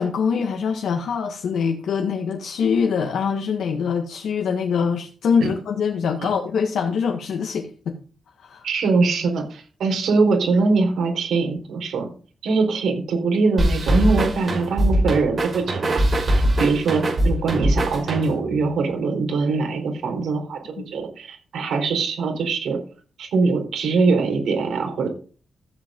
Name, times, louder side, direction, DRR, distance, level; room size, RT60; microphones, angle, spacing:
voice 1, 0.0-8.0 8.4-8.7 20.8-20.9, left 6 dB, 80° left, 3 dB, 1.6 m, -24 dB
voice 2, 8.6-12.1 12.4-15.9 16.6-22.8 23.2-25.1, right 4 dB, 90° right, 2 dB, 4.1 m, -22 dB
sound 1, 13.6-18.5, right 1 dB, 35° right, 5.3 m, -21 dB
14.5 x 7.9 x 3.8 m, 0.39 s
wide cardioid pair, 170°, 0 cm